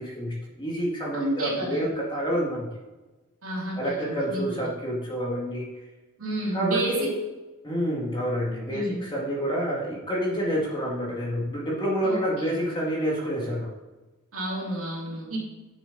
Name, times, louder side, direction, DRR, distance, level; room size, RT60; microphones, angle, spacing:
voice 1, 0.0-2.7 3.8-5.7 6.5-7.1 7.6-13.7, equal, 20° left, -3 dB, 2.0 m, -28 dB
voice 2, 1.1-1.9 3.4-4.7 6.2-7.1 8.7-9.0 12.0-12.5 14.3-15.4, right 1 dB, 65° right, -4 dB, 3.1 m, -31 dB
10.0 x 6.2 x 4.0 m, 1.2 s
head